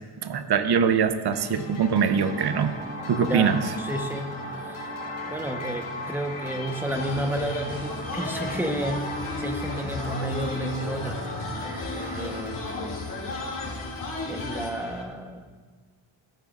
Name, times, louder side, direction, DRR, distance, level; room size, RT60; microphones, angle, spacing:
voice 1, 0.2-2.7 3.1-3.7, right 7 dB, 55° right, 9 dB, 0.7 m, -23 dB
sound 1, 1.3-15.0, left 4 dB, 85° left, 1.7 m, -41 dB
sound 2, 2.3-12.4, right 1 dB, 25° right, 1.6 m, -38 dB
voice 2, 3.2-4.3 4.6-4.9 5.3-11.3 12.0-13.0 14.3-15.4, right 1 dB, 5° right, 4 dB, 0.9 m, -32 dB
sound 3, 6.9-14.7, left 2 dB, 40° left, 2.4 m, -34 dB
15.0 x 14.0 x 2.4 m, 1.4 s
wide cardioid pair, 140°, 48 cm